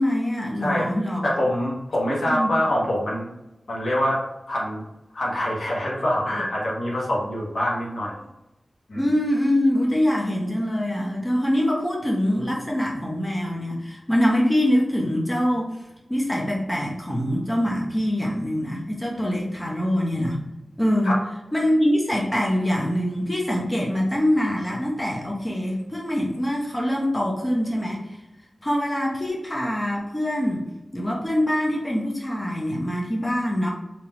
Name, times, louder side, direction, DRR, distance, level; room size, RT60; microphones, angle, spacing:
voice 1, 0.0-1.2 2.3-2.5 8.9-15.7 16.1-20.4 20.8-21.1 21.5-28.2 28.6-30.6 30.9-33.7, equal, 20° left, -2 dB, 0.9 m, -24 dB
voice 2, 1.2-3.3 3.7-4.8 5.1-8.2 8.9-9.1 21.0-21.2, equal, 75° left, -5 dB, 1.3 m, -25 dB
3.6 x 3.0 x 3.0 m, 0.95 s
cardioid pair, 50°, 0 cm